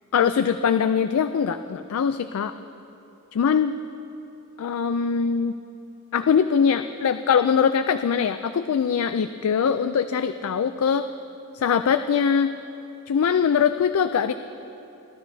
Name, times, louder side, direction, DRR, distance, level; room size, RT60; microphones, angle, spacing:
voice 1, 0.1-2.5 3.3-3.8 4.6-5.6 6.1-11.1 11.5-12.5 13.1-14.3, left 7 dB, 70° left, 10 dB, 0.4 m, -22 dB
26.5 x 12.5 x 2.7 m, 2.8 s
head